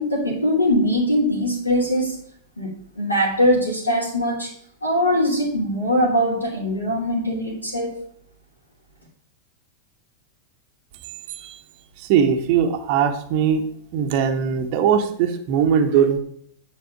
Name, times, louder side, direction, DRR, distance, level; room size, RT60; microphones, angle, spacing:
voice 1, 0.0-2.2 2.6-4.5 4.8-8.0, equal, 80° left, -7 dB, 2.5 m, -21 dB
voice 2, 12.1-13.6 13.9-16.2, right 8 dB, 45° right, 5 dB, 1.1 m, -20 dB
9.7 x 4.1 x 7.0 m, 0.64 s
figure-of-eight pair, 90°, 0 cm